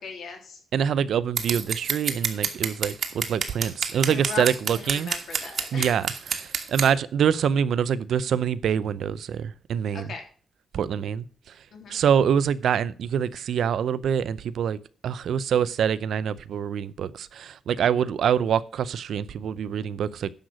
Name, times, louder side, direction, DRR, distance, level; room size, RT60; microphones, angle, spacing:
voice 1, 0.0-0.6 4.1-6.0 9.9-10.3 11.7-12.0, left 5 dB, 65° left, 3.4 m, -38 dB
voice 2, 0.7-5.1 5.7-10.1 10.7-11.2 11.9-20.3, right 8 dB, 70° right, 0.6 m, -25 dB
Scissors, 1.4-6.9, right 6 dB, 50° right, 1.4 m, -28 dB
10.5 x 6.5 x 6.2 m
wide cardioid pair, 165°, 0 cm